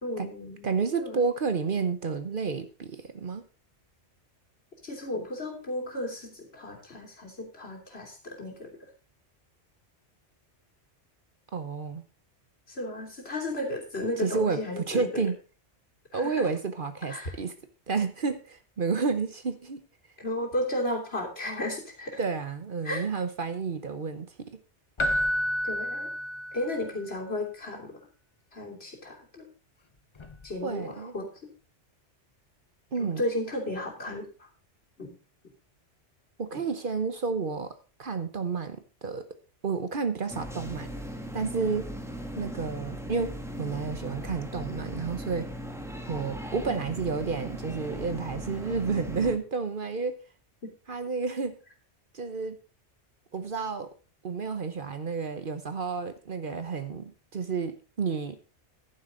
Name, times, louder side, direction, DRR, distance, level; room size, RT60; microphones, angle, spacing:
voice 1, 0.0-0.7 1.0-1.2 4.8-8.8 12.7-15.2 16.1-16.5 17.1-17.3 20.2-22.2 22.8-23.0 25.6-26.1 26.5-28.0 28.5-29.5 30.4-31.3 33.0-34.3 35.0-35.1 36.5-36.6, left 1 dB, 60° left, 0 dB, 3.3 m, -34 dB
voice 2, 0.6-3.4 11.5-12.0 14.2-15.4 16.1-17.5 17.9-19.8 22.2-24.6 30.6-31.1 32.9-33.2 36.4-37.7 38.0-39.3 39.6-40.9 41.3-41.9 42.4-45.5 46.1-50.2 50.9-51.6 52.1-52.6 53.3-53.9 54.2-58.4, right 5 dB, 50° right, 10 dB, 1.0 m, -31 dB
Keyboard (musical), 25.0-26.9 30.2-30.4, equal, 30° left, 0.8 m, -29 dB
sound 1, 40.3-49.4, equal, ahead, 1.4 m, -38 dB
11.0 x 9.6 x 3.8 m, 0.34 s
omnidirectional pair, 1.2 m